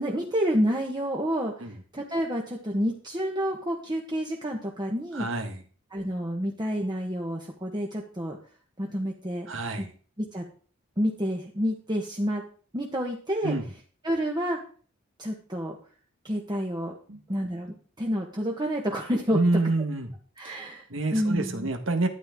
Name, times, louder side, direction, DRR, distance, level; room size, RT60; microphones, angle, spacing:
voice 1, 0.0-1.5 1.9-5.3 5.9-8.4 8.8-9.5 9.8-9.9 10.2-10.4 11.0-12.4 12.7-13.5 14.0-14.6 15.2-15.8 16.2-17.0 17.3-19.6 20.4-20.8 21.1-21.7, equal, 20° right, 1.5 m, -29 dB
voice 2, 5.1-5.5 9.5-9.9 13.4-13.6 17.1-17.2 19.3-20.1 20.4-20.6 20.9-22.1, right 2 dB, 70° right, 1.6 m, -27 dB
12.5 x 9.2 x 3.8 m
head